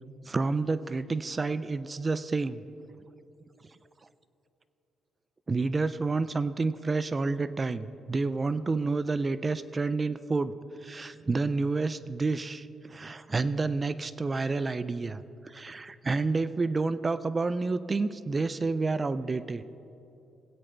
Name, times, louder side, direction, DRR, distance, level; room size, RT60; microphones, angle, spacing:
voice 1, 0.3-2.6 5.5-10.5 10.8-19.6, right 3 dB, 30° right, 14 dB, 0.3 m, -29 dB
18.0 x 9.1 x 3.3 m, 2.8 s
cardioid pair, 90°, 0 cm